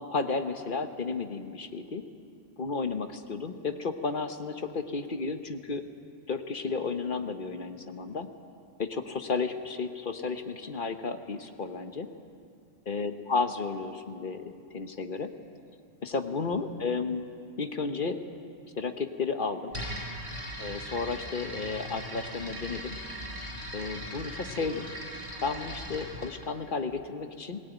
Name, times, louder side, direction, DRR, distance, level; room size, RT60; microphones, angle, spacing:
voice 1, 0.0-2.0 2.6-5.8 6.3-8.3 8.8-12.1 12.9-15.3 16.0-17.3 17.6-18.2 18.7-19.7 20.6-22.9 23.7-24.9 25.4-27.6, left 4 dB, 45° left, 7 dB, 1.2 m, -33 dB
sound 1, 19.7-26.3, equal, 50° right, 5.3 m, -39 dB
18.5 x 18.5 x 9.2 m, 2.3 s
omnidirectional pair, 1.2 m